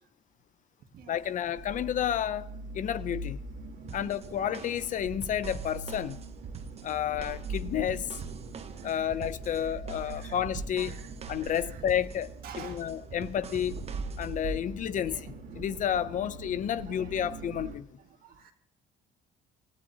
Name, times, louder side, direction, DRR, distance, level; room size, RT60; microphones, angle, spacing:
voice 1, 1.1-2.5 2.7-3.4 3.9-6.2 6.8-8.1 8.8-11.0 11.3-13.8 14.2-17.9, left 10 dB, 50° left, 0.6 m, -31 dB
sound 1, 1.1-17.8, right 2 dB, 85° right, 2.7 m, -41 dB
sound 2, 3.9-14.6, right 5 dB, 40° right, 1.0 m, -46 dB
voice 2, 8.8-9.1 9.6-9.7 10.0-10.4 10.7-11.1 11.4-11.8 12.4-12.8 15.0-15.2 16.9-17.3 18.2-18.5, right 8 dB, 60° right, 1.8 m, -49 dB
27.5 x 15.0 x 2.8 m
cardioid pair, 110°, 17 cm